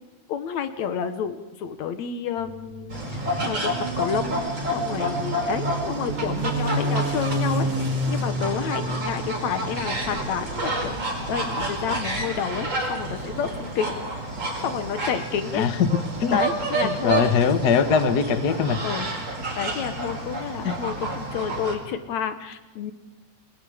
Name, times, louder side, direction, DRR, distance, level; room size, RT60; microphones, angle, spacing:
voice 1, 0.3-3.6 4.0-14.2 14.6-15.7 16.3-17.2 18.8-19.1 19.5-22.9, left 8 dB, 70° left, 10 dB, 2.3 m, -30 dB
sound 1, 2.4-10.0, right 1 dB, 60° right, 4.4 m, -30 dB
sound 2, 2.9-21.7, right 2 dB, 35° right, 5.4 m, -30 dB
voice 2, 15.5-15.9 16.2-16.4 17.0-18.8 20.6-20.7, left 6 dB, 45° left, 9 dB, 1.3 m, -21 dB
29.5 x 20.5 x 5.0 m, 1.2 s
omnidirectional pair, 3.6 m